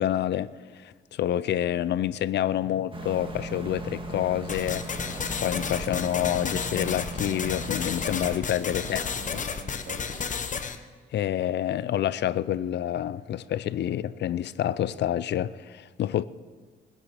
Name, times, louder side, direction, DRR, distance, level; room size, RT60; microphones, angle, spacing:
voice 1, 0.0-4.9 5.4-9.0 9.3-9.4 11.1-16.2, left 11 dB, 65° left, 0.6 m, -28 dB
sound 1, 2.9-8.4, right 1 dB, 25° right, 1.8 m, -37 dB
sound 2, 4.5-10.8, left 6 dB, 40° left, 1.1 m, -32 dB
voice 2, 8.8-10.3, right 2 dB, 55° right, 3.0 m, -44 dB
21.0 x 8.4 x 5.9 m
cardioid pair, 95°, 19 cm